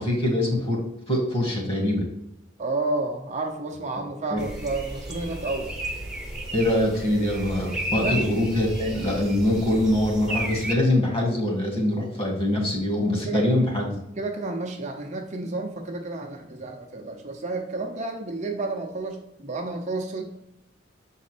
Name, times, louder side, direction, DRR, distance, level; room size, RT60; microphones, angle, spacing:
voice 1, 0.0-2.1 4.0-4.1 4.3-4.4 6.5-14.0, left 1 dB, 30° left, 0 dB, 2.0 m, -24 dB
voice 2, 2.6-5.7 8.0-8.3 13.3-13.5 14.2-20.2, right 2 dB, 40° right, 2 dB, 0.8 m, -31 dB
sound 1, 4.4-10.7, equal, 5° right, 1.0 m, -33 dB
7.2 x 4.1 x 4.4 m, 0.86 s
head